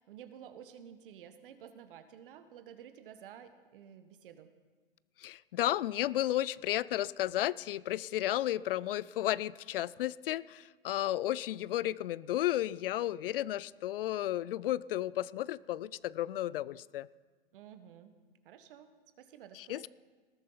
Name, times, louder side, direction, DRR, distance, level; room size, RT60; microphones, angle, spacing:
voice 1, 0.0-4.5 17.5-18.1 18.4-18.9 19.2-19.9, right 9 dB, 65° right, 10 dB, 1.3 m, -52 dB
voice 2, 5.2-17.1 19.5-19.9, left 14 dB, 70° left, 21 dB, 0.5 m, -33 dB
19.5 x 13.5 x 3.9 m, 1.4 s
hypercardioid pair, 120°, 29 cm